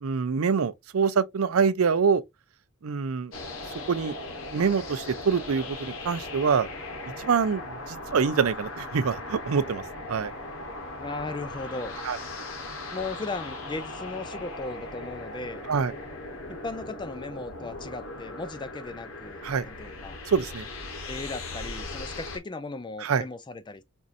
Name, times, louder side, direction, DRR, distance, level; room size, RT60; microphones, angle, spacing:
voice 1, 0.0-2.2 2.8-3.3 3.9-4.1 4.5-6.7 7.2-9.8 10.1-10.3 12.1-12.2 15.7-15.9 19.4-19.7 20.3-20.7 23.0-23.2, right 6 dB, 85° right, 0.5 m, -25 dB
sound 1, 3.3-22.4, left 2 dB, 70° left, 1.2 m, -38 dB
voice 2, 11.0-11.9 12.9-15.6 16.5-20.2 21.1-23.8, left 3 dB, 20° left, 0.4 m, -37 dB
4.4 x 2.6 x 2.5 m
head